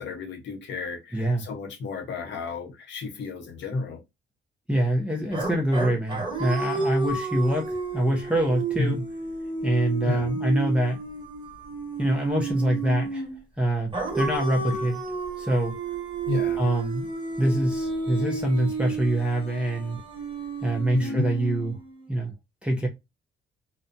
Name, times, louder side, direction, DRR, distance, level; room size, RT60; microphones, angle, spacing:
voice 1, 0.0-4.0 8.8-9.0 10.0-10.3 14.7-14.9 16.3-16.6 20.9-21.3, left 3 dB, 65° left, 0.9 m, -31 dB
voice 2, 1.1-1.4 4.7-9.0 9.6-11.0 12.0-13.3 13.6-15.0 15.4-15.8 16.6-17.1 17.4-20.0 20.6-21.8 22.1-22.3 22.6-22.9, right 1 dB, 5° right, 0.7 m, -25 dB
sound 1, 5.3-13.4 13.9-22.0, right 3 dB, 25° right, 1.4 m, -31 dB
2.5 x 2.2 x 2.6 m
cardioid pair, 90°, 20 cm